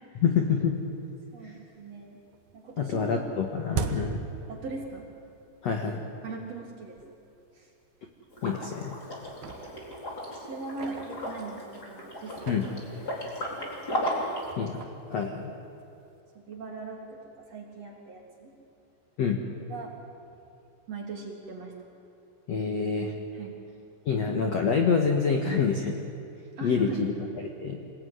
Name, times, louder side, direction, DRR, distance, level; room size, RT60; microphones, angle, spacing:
voice 1, 0.2-0.7 1.4-1.5 2.8-4.2 5.6-6.0 8.4-8.9 12.5-12.7 14.6-15.5 19.2-19.4 22.5-23.1 24.0-26.0 26.6-27.1 27.6-27.8, left 5 dB, 60° left, 2 dB, 1.7 m, -26 dB
sound 1, 0.9-1.0 1.4-2.0 2.3-5.2 5.5-5.6 6.4-6.5 7.0-7.1 7.4-7.6 8.3-8.8 9.1-11.8 12.2-16.1, right 5 dB, 65° right, 2.0 m, -40 dB
voice 2, 1.3-2.2 2.5-3.2 3.7-4.0 4.5-5.1 6.2-7.0 7.5-7.7 10.4-13.8 16.3-18.6 19.7-19.9 20.9-21.7 23.3-23.6 26.6-27.3, right 3 dB, 40° right, -1 dB, 3.8 m, -41 dB
Liquid, 8.3-14.4, equal, 20° left, 4.1 m, -35 dB
27.0 x 20.0 x 9.5 m, 2.6 s
omnidirectional pair, 5.4 m